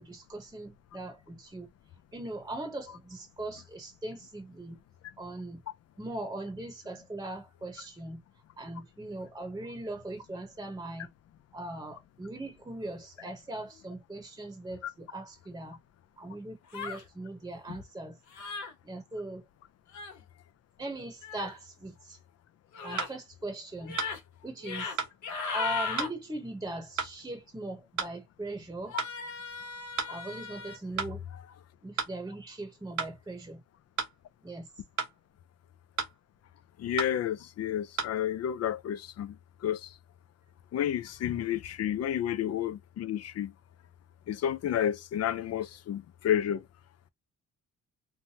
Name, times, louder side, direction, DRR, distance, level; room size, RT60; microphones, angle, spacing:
voice 1, 0.0-1.7 2.1-4.8 5.2-5.6 6.0-8.2 8.6-11.1 11.5-15.8 16.2-18.2 18.8-19.4 20.8-22.2 22.8-24.0 24.4-25.0 25.5-29.0 30.1-31.2 31.8-33.6 34.4-34.7, right 2 dB, 10° right, 0.9 m, -40 dB
sound 1, 16.7-17.0 18.3-18.7 19.9-20.2 21.2-21.5 22.7-23.1 23.8-24.2 24.6-25.0 25.2-26.1 28.9-30.8, left 5 dB, 75° left, 1.0 m, -37 dB
sound 2, 23.0-23.1 24.0-24.1 25.0-25.1 26.0-26.1 27.0-27.1 28.0-28.1 29.0-29.1 30.0-30.1 31.0-31.1 32.0-32.1 33.0-33.1 34.0-34.1 35.0-35.1 36.0-36.1 37.0-37.1 38.0-38.1, right 6 dB, 70° right, 0.9 m, -32 dB
voice 2, 36.8-39.4 39.6-39.9 40.7-43.5 44.3-46.6, left 10 dB, 55° left, 0.5 m, -31 dB
3.2 x 2.2 x 2.8 m
cardioid pair, 90°, 30 cm